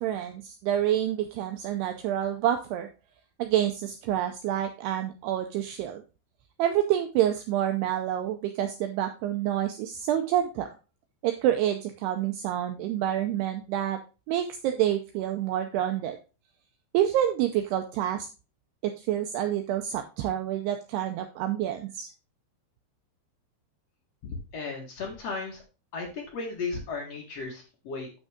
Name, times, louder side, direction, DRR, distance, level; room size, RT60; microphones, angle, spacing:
voice 1, 0.0-2.9 3.4-6.0 6.6-10.7 11.2-14.0 14.3-16.2 16.9-18.3 18.8-22.1, right 11 dB, 85° right, 6 dB, 2.4 m, -28 dB
voice 2, 24.2-25.6 25.9-28.2, left 4 dB, 55° left, -1 dB, 1.8 m, -35 dB
9.0 x 6.3 x 3.6 m, 0.32 s
omnidirectional pair, 5.4 m